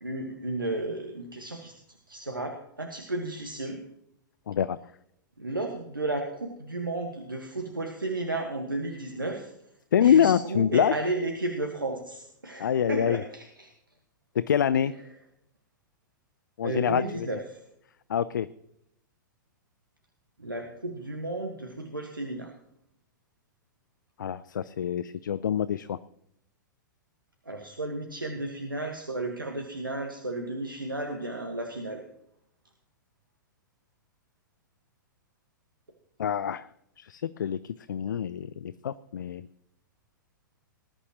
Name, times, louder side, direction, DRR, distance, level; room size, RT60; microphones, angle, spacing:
voice 1, 0.0-1.7 2.1-3.8 5.4-9.5 10.0-13.7 16.6-17.6 20.4-22.5 27.5-32.0, right 2 dB, 90° right, 3 dB, 1.5 m, -33 dB
voice 2, 4.5-4.8 9.9-10.9 12.6-13.2 14.4-14.9 16.6-17.3 18.1-18.5 24.2-26.0 36.2-36.7 37.0-39.5, left 9 dB, 65° left, 16 dB, 0.5 m, -25 dB
19.5 x 11.5 x 3.0 m, 0.76 s
figure-of-eight pair, 105°, 11 cm